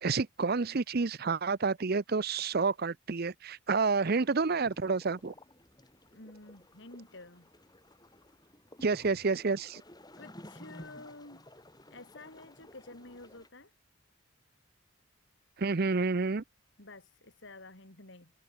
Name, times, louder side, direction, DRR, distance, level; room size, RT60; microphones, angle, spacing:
voice 1, 0.0-5.3 8.8-9.8 15.6-16.4, right 4 dB, 45° right, 0.6 m, -29 dB
sound 1, 4.2-13.5, left 1 dB, 20° left, 6.2 m, -54 dB
voice 2, 6.1-7.5 10.2-11.4 11.9-13.7 16.8-18.3, left 2 dB, 55° left, 3.5 m, -50 dB
head